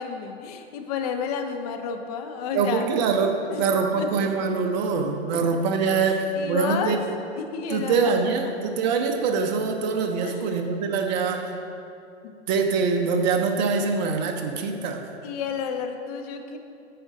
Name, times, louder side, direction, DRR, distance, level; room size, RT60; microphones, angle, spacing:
voice 1, 0.0-2.9 3.5-3.6 4.0-4.3 6.0-7.0 7.4-8.1 8.4-8.5 10.2-10.5 12.2-12.3 15.2-16.6, left 6 dB, 35° left, 6 dB, 0.6 m, -31 dB
voice 2, 2.5-7.0 7.7-11.5 12.5-15.1, right 5 dB, 40° right, 4 dB, 0.7 m, -24 dB
8.8 x 5.1 x 3.7 m, 2.5 s
hypercardioid pair, 130°, 35 cm